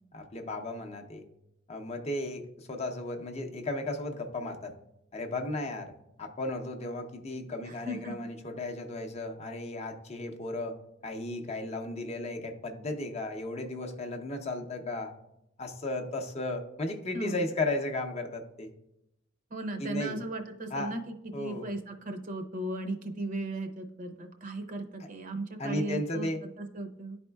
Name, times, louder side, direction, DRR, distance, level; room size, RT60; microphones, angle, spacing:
voice 1, 0.1-1.2 1.7-4.7 5.1-5.9 6.2-10.8 11.0-15.1 15.6-18.7 19.8-20.2 20.7-20.9 21.3-21.7 25.6-26.4, left 2 dB, 35° left, 4 dB, 0.6 m, -35 dB
voice 2, 7.7-8.1 17.1-17.4 19.5-26.3 26.6-27.2, right 1 dB, 40° right, 5 dB, 0.7 m, -36 dB
11.5 x 4.2 x 2.3 m, 0.83 s
head